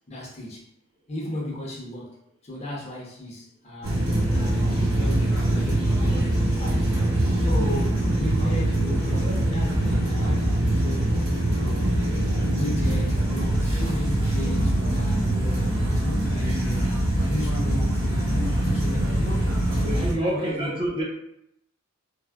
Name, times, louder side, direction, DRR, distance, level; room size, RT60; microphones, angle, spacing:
voice 1, 0.1-0.6 1.1-2.2 2.4-6.8 7.4-11.1 11.6-11.9 12.4-16.9 17.3-19.5 19.9-20.7, left 1 dB, 30° left, -3 dB, 0.6 m, -35 dB
sound 1, 3.8-20.1, right 1 dB, 70° right, 0.8 m, -23 dB
voice 2, 19.8-21.0, right 1 dB, 25° right, -4 dB, 0.5 m, -28 dB
3.4 x 2.0 x 2.2 m, 0.77 s
head